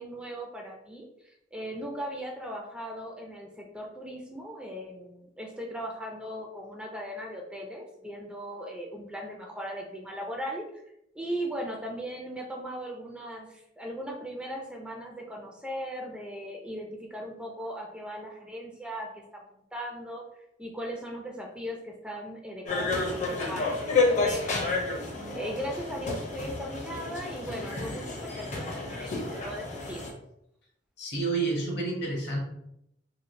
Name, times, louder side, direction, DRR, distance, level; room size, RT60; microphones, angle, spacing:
voice 1, 0.0-10.7 11.1-24.8 25.2-30.0, equal, 5° right, -1 dB, 0.3 m, -38 dB
sound 1, 22.7-30.1, left 3 dB, 40° left, 0.6 m, -30 dB
voice 2, 31.0-32.4, right 3 dB, 65° left, -1 dB, 0.9 m, -29 dB
3.0 x 2.4 x 2.6 m, 0.79 s
head